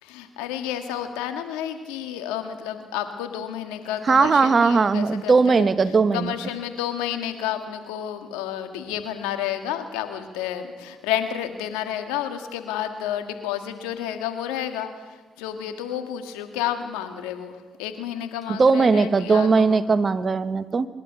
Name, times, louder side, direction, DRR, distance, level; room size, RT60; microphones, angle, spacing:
voice 1, 0.0-5.7 6.1-19.8, left 10 dB, 90° left, 7 dB, 1.7 m, -31 dB
voice 2, 4.1-6.3 18.5-20.9, right 4 dB, 40° right, 13 dB, 1.1 m, -19 dB
24.5 x 11.5 x 9.4 m, 1.4 s
supercardioid pair, 60°, 0 cm